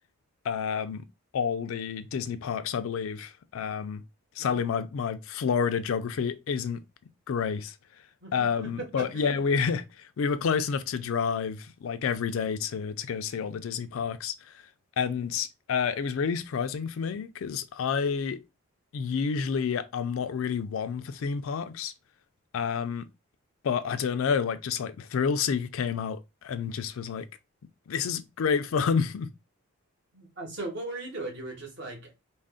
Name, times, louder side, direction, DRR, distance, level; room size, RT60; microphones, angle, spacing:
voice 1, 0.4-1.0 1.3-4.0 4.4-6.8 7.3-7.7 8.3-14.6 15.0-18.4 18.9-21.9 22.5-23.1 23.6-27.3 27.9-29.3, left 6 dB, 70° left, 0.4 m, -29 dB
voice 2, 8.2-9.4 30.1-32.1, right 2 dB, 55° right, 1.1 m, -38 dB
2.5 x 2.1 x 3.5 m
head